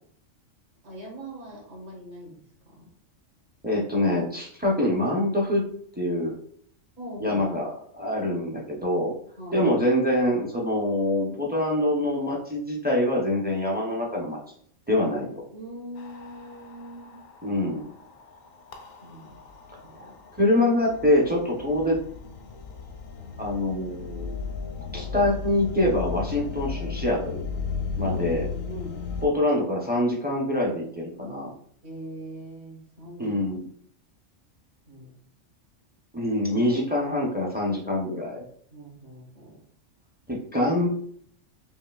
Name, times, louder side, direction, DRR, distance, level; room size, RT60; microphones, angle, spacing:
voice 1, 0.8-2.9 7.0-7.4 9.4-9.7 15.5-17.2 19.0-19.4 19.8-20.2 28.0-29.0 31.8-33.3 34.9-35.1 38.7-39.6, right 1 dB, 55° right, -5 dB, 1.9 m, -41 dB
voice 2, 3.6-5.6 6.0-6.3 7.2-9.1 9.5-14.4 14.9-15.4 17.4-17.9 19.9-22.0 23.4-24.3 24.9-27.5 28.0-28.4 29.2-31.5 33.2-33.7 36.1-38.4 40.3-40.9, left 1 dB, 10° right, -2 dB, 0.5 m, -25 dB
sound 1, 16.0-29.3, left 5 dB, 85° left, 1.0 m, -36 dB
5.4 x 2.7 x 2.4 m, 0.62 s
omnidirectional pair, 1.3 m